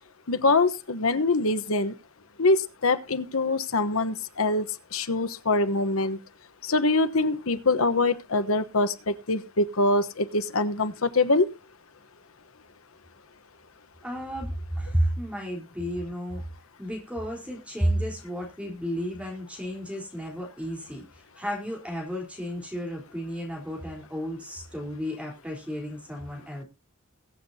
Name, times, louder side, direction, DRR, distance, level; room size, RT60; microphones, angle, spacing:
voice 1, 0.3-2.0 2.4-4.7 4.9-6.2 6.6-11.5, left 2 dB, 80° left, 1.1 m, -24 dB
voice 2, 14.0-16.4 16.8-26.6, equal, 5° right, 3.9 m, -32 dB
22.0 x 8.2 x 2.8 m
head